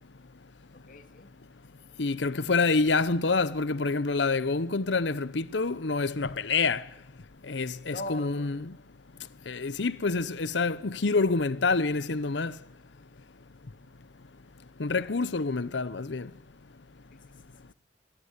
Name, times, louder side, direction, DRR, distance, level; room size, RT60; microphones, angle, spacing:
voice 1, 0.7-1.3 7.9-8.6 14.9-15.2 17.1-17.7, left 1 dB, 50° left, 2.4 m, -43 dB
voice 2, 2.0-6.8 7.5-8.7 9.5-12.5 14.8-16.3, left 4 dB, 75° left, 0.8 m, -27 dB
24.0 x 17.0 x 9.8 m
head